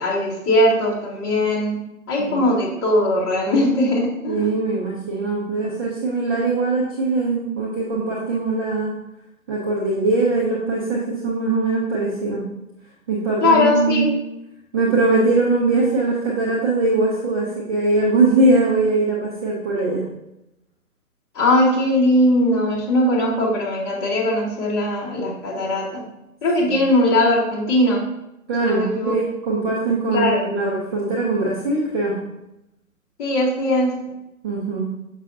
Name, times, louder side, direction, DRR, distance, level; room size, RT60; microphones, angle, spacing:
voice 1, 0.0-1.8 2.1-4.5 13.4-14.1 21.3-26.0 26.4-28.0 28.6-29.2 30.1-30.4 33.2-33.9, left 1 dB, 25° left, -7 dB, 2.4 m, -19 dB
voice 2, 4.3-9.0 9.5-12.5 13.1-14.1 14.7-20.0 26.6-26.8 28.5-32.2 34.4-34.9, right 3 dB, 15° right, -6 dB, 0.7 m, -21 dB
6.4 x 6.3 x 2.6 m, 0.87 s
figure-of-eight pair, 135°, 44 cm